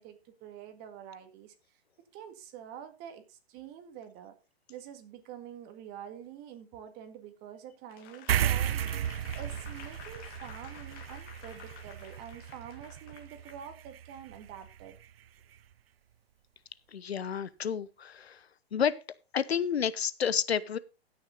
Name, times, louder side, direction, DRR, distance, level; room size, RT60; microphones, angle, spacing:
voice 1, 0.0-1.6 2.1-4.4 4.7-15.0, right 9 dB, 30° right, 2.0 m, -47 dB
Applause / Crowd, 7.9-13.6 14.1-14.3, left 9 dB, 30° left, 1.9 m, -51 dB
sound 1, 8.3-15.1, right 10 dB, 70° right, 0.6 m, -35 dB
voice 2, 16.9-18.4 18.7-19.0 19.3-20.8, left 7 dB, 80° left, 0.9 m, -30 dB
16.0 x 6.5 x 4.0 m
hypercardioid pair, 125°, 31 cm